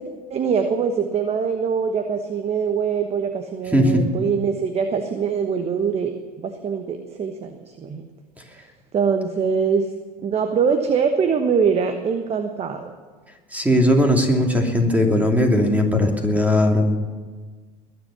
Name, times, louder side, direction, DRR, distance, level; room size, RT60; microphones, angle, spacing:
voice 1, 0.3-6.1 6.4-8.0 8.9-9.9 10.2-12.9, right 6 dB, 30° right, 7 dB, 1.2 m, -23 dB
voice 2, 3.7-4.1 13.5-17.0, left 1 dB, 5° right, 2 dB, 2.8 m, -18 dB
21.0 x 7.8 x 6.9 m, 1.4 s
hypercardioid pair, 80°, 20 cm